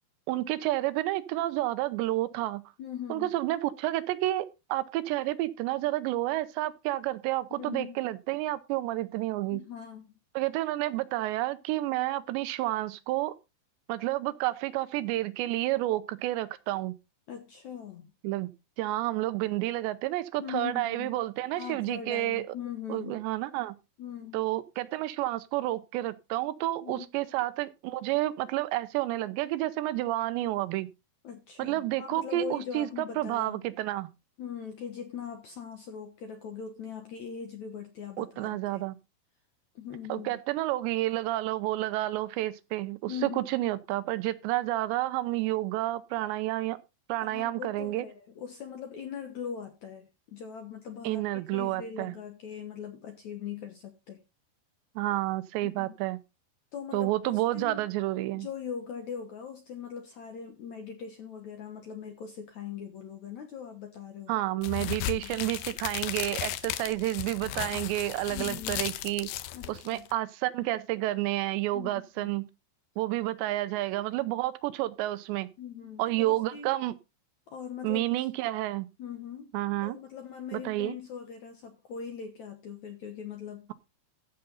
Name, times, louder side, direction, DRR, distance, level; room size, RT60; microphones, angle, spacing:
voice 1, 0.3-2.6 3.1-9.6 10.4-13.3 13.9-17.0 18.2-18.5 18.8-22.4 22.9-23.8 24.3-30.9 31.6-32.9 33.2-34.1 38.2-39.0 40.1-46.8 47.1-48.1 51.0-52.2 55.0-56.2 56.9-58.5 64.3-69.3 69.7-72.5 73.0-75.5 76.0-76.9 77.8-78.9 79.5-80.0 80.5-81.0, right 16 dB, 90° right, 3.0 m, -30 dB
voice 2, 2.8-3.3 7.6-8.0 9.5-10.0 17.3-18.1 20.4-21.2 21.6-23.2 24.0-24.4 26.8-27.1 31.2-33.6 34.4-38.8 39.8-40.3 43.1-43.5 47.2-51.2 51.5-54.2 55.6-55.9 56.7-57.8 58.3-64.3 64.8-65.4 68.3-68.9 69.5-70.1 71.7-72.3 75.6-76.7 77.5-78.0 79.0-79.5 79.8-83.7, left 7 dB, 70° left, 1.8 m, -41 dB
sound 1, 64.6-70.1, left 14 dB, 90° left, 2.1 m, -35 dB
14.5 x 6.8 x 4.0 m
omnidirectional pair, 4.9 m